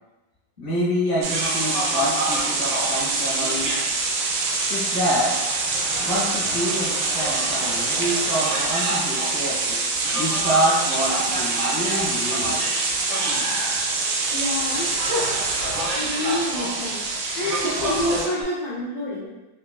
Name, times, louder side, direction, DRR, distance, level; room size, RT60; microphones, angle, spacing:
voice 1, 0.6-3.7 4.7-5.4 6.0-9.8 10.1-12.6, equal, 30° right, -10 dB, 0.5 m, -27 dB
sound 1, 1.2-18.4, right 1 dB, 65° right, 1.1 m, -32 dB
sound 2, 1.2-18.3, right 3 dB, 80° right, 1.4 m, -25 dB
voice 2, 14.3-14.9 15.9-17.1 17.4-19.3, left 1 dB, 85° left, -5 dB, 0.8 m, -28 dB
4.1 x 2.2 x 2.3 m, 1.1 s
omnidirectional pair, 2.3 m